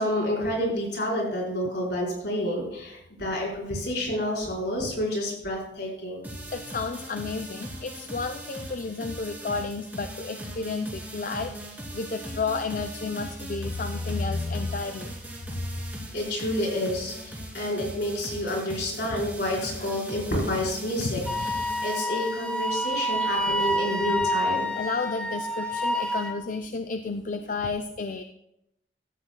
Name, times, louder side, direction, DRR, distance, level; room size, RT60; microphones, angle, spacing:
voice 1, 0.0-6.2 16.1-21.5 21.8-24.7, left 1 dB, 70° left, -3 dB, 4.4 m, -29 dB
sound 1, 6.2-22.9, right 1 dB, 10° right, 2.6 m, -40 dB
voice 2, 6.5-15.1 15.5-15.6 19.1-19.2 21.0-21.3 24.7-28.2, left 4 dB, 45° left, 7 dB, 0.4 m, -31 dB
Wind instrument woodwind instrument, 21.3-26.4, equal, 5° left, 0.8 m, -28 dB
15.5 x 12.5 x 2.2 m, 0.83 s
head